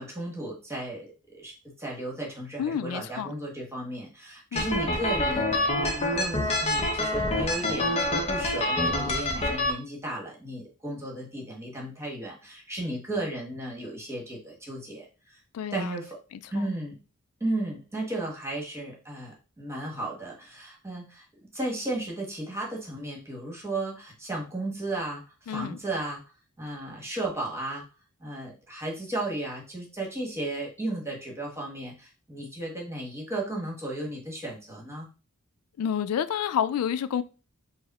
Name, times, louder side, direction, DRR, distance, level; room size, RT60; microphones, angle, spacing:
voice 1, 0.0-15.4 15.7-16.2 16.5-17.0 17.4-26.2 26.6-27.9 28.2-35.1, right 1 dB, 15° right, 1.2 m, -34 dB
voice 2, 2.6-3.3 4.5-4.7 15.5-16.0 25.5-25.8 35.8-37.2, left 8 dB, 90° left, 0.3 m, -29 dB
sound 1, 4.6-9.7, left 1 dB, 30° left, 0.7 m, -26 dB
4.7 x 2.0 x 4.1 m
head